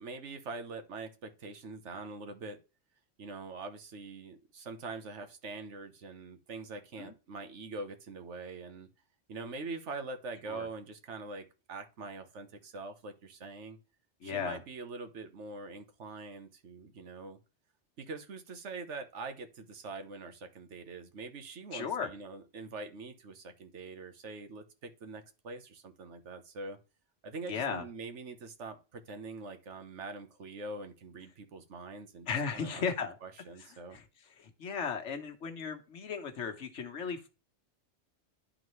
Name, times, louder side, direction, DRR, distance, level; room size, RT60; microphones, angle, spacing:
voice 1, 0.0-2.6 3.2-8.9 9.3-13.8 14.2-17.4 18.0-26.8 27.2-32.3 32.5-34.0, right 3 dB, 85° right, 8 dB, 1.4 m, -44 dB
voice 2, 14.2-14.6 21.7-22.1 27.5-27.9 32.3-33.1 33.9-34.0 34.4-37.3, left 6 dB, 85° left, 5 dB, 1.4 m, -35 dB
11.0 x 3.8 x 3.1 m, 0.32 s
omnidirectional pair, 1.2 m